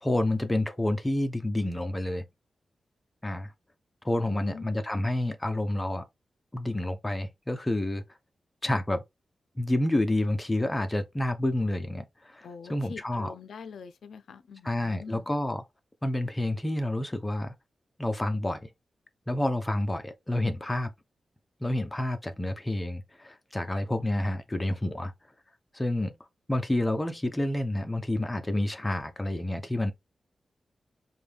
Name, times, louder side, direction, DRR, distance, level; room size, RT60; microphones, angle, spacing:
voice 1, 0.0-2.2 3.2-3.5 4.0-6.0 6.5-8.0 8.6-9.0 9.6-13.3 14.6-15.6 16.0-17.5 18.0-18.7 19.3-20.9 21.6-25.1 25.7-26.1 26.5-29.9, left 1 dB, 15° left, 0.6 m, -29 dB
voice 2, 4.3-4.8 12.4-15.3, left 6 dB, 85° left, 0.4 m, -44 dB
5.2 x 2.2 x 3.3 m
wide cardioid pair, 150°, 0 cm